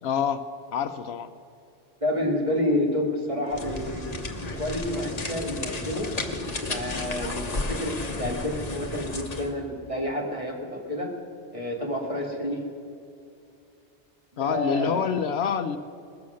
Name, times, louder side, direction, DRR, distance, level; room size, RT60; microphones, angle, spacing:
voice 1, 0.0-0.4 0.7-1.3 14.4-15.8, left 7 dB, 75° left, 10 dB, 0.9 m, -26 dB
voice 2, 2.0-4.0 4.4-6.1 6.7-11.1 11.5-12.6 14.3-15.1, left 1 dB, 30° right, -1 dB, 2.2 m, -29 dB
sound 1, 3.5-9.5, left 2 dB, 35° left, 1.1 m, -33 dB
20.0 x 7.0 x 6.4 m, 2.5 s
omnidirectional pair, 1.1 m